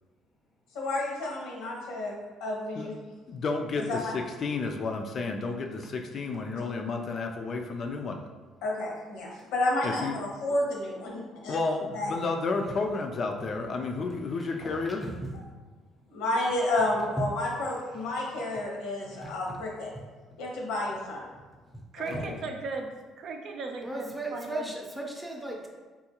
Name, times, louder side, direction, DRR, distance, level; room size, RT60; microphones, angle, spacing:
voice 1, 0.7-2.1 2.4-3.0 3.9-4.1 8.6-11.6 11.9-12.2 16.1-19.9 20.4-21.2 22.0-22.1, left 2 dB, 85° left, -2 dB, 0.8 m, -30 dB
voice 2, 3.3-8.2 9.8-10.2 11.5-15.0 22.1-22.4, left 3 dB, 50° left, 3 dB, 0.3 m, -31 dB
voice 3, 14.3-15.3 17.2-17.3 19.0-19.6 19.9-20.0 22.1-22.2 23.8-25.7, right 2 dB, 5° right, 0 dB, 0.6 m, -37 dB
voice 4, 21.9-22.9 23.2-24.7, right 3 dB, 60° right, 3 dB, 0.4 m, -37 dB
3.7 x 2.4 x 2.8 m, 1.3 s
cardioid pair, 85°, 0 cm